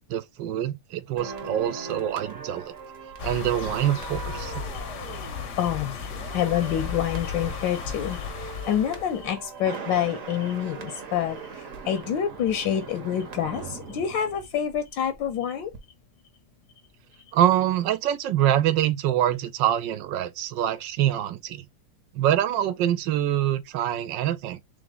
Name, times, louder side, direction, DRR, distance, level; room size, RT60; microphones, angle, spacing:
voice 1, 0.1-2.7 3.2-4.5 17.3-21.6 22.1-24.6, right 11 dB, 75° right, 1.2 m, -25 dB
sound 1, 1.2-15.3 15.6-15.8, right 5 dB, 50° right, 1.1 m, -40 dB
sound 2, 3.2-9.3, left 7 dB, 55° left, 0.8 m, -35 dB
voice 2, 5.6-15.7, left 9 dB, 80° left, 1.3 m, -27 dB
3.5 x 3.3 x 3.8 m
omnidirectional pair, 2.1 m